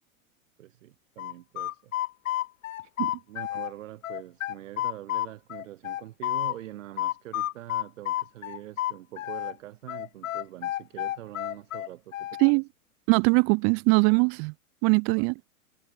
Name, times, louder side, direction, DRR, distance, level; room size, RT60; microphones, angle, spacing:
voice 1, 0.6-1.9 3.3-12.4 15.1-15.3, right 14 dB, 60° right, 1.8 m, -44 dB
sound 1, 1.2-3.7 4.0-6.6 7.0-9.5 9.9-12.5, left 13 dB, 65° left, 0.9 m, -31 dB
voice 2, 13.1-14.5 14.8-15.3, right 36 dB, 30° right, 0.5 m, -21 dB
hypercardioid pair, 105°, 42 cm